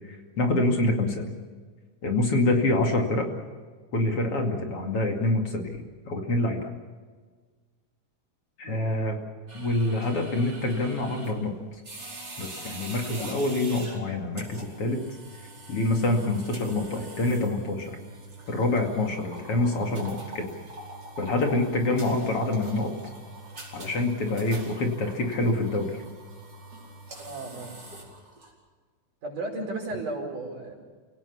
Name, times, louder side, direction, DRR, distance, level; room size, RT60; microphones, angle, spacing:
voice 1, 0.4-1.3 2.0-3.3 3.9-6.7 8.6-9.2 9.5-11.5 12.4-15.0 15.7-17.9 18.5-20.5 21.2-22.9 23.7-26.0, left 2 dB, 45° left, 3 dB, 3.2 m, -26 dB
sound 1, 9.5-28.5, right 2 dB, 30° right, 5.4 m, -44 dB
voice 2, 27.2-27.8 29.2-30.7, right 2 dB, 80° right, 0 dB, 6.5 m, -34 dB
28.5 x 18.0 x 7.1 m, 1.5 s
omnidirectional pair, 3.6 m